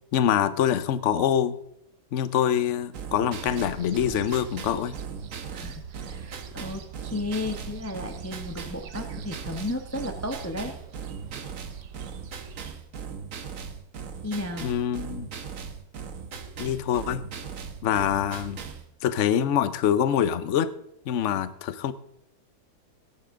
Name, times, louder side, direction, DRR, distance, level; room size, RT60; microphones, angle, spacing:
voice 1, 0.1-1.6 2.1-4.9 14.6-15.3 16.6-17.3 17.8-18.6 19.0-20.7 21.1-21.9, left 9 dB, 55° left, 14 dB, 0.9 m, -25 dB
sound 1, 2.9-18.9, right 6 dB, 55° right, 1.3 m, -39 dB
sound 2, 3.4-12.8, right 7 dB, 80° right, 1.6 m, -45 dB
voice 2, 5.5-10.7 14.2-14.7, left 2 dB, 10° left, 5 dB, 0.8 m, -34 dB
18.0 x 10.5 x 3.8 m, 0.75 s
omnidirectional pair, 1.9 m